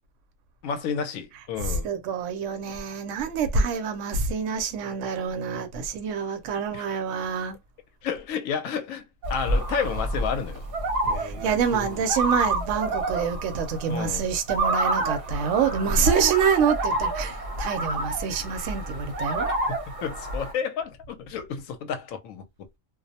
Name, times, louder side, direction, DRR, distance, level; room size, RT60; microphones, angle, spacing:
voice 1, 0.6-1.9 6.7-6.9 8.0-9.0 9.3-10.6 13.9-14.2 19.5-22.5, left 7 dB, 85° left, 1.0 m, -31 dB
voice 2, 1.7-7.6 11.1-19.5, right 6 dB, 75° right, 0.9 m, -26 dB
sound 1, 9.2-20.5, right 2 dB, 50° right, 0.9 m, -29 dB
2.4 x 2.0 x 2.7 m
omnidirectional pair, 1.4 m